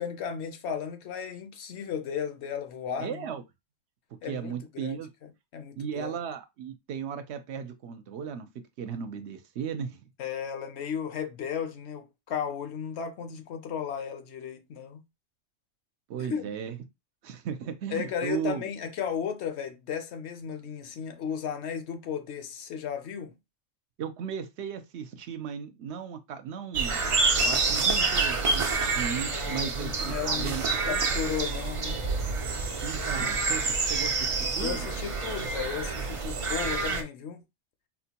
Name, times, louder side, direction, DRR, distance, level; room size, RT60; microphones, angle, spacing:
voice 1, 0.0-3.2 4.2-6.2 10.2-15.0 16.2-16.5 17.9-23.3 29.3-30.6 30.8-32.0 34.6-37.4, left 8 dB, 70° left, 0.8 m, -35 dB
voice 2, 3.0-3.4 4.2-5.1 5.8-8.5 8.8-10.0 16.1-16.8 17.2-18.7 24.0-27.0 27.4-31.0 32.8-34.9, right 7 dB, 70° right, 0.8 m, -36 dB
sound 1, 26.7-37.0, right 4 dB, 50° right, 0.4 m, -28 dB
4.2 x 2.2 x 2.8 m
omnidirectional pair, 1.2 m